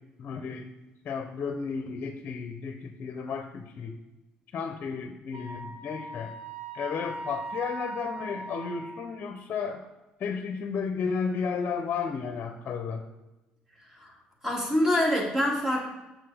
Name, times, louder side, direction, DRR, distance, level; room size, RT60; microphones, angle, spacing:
voice 1, 0.2-0.7 1.0-4.0 4.5-6.3 6.7-9.9 10.2-13.1, left 5 dB, 55° left, 6 dB, 0.7 m, -33 dB
Wind instrument woodwind instrument, 5.3-9.2, right 2 dB, 50° right, 1.1 m, -39 dB
voice 2, 13.7-14.2 14.4-15.9, left 1 dB, 10° right, -1 dB, 2.5 m, -26 dB
7.8 x 6.3 x 3.4 m, 1.0 s
supercardioid pair, 80°, 4 cm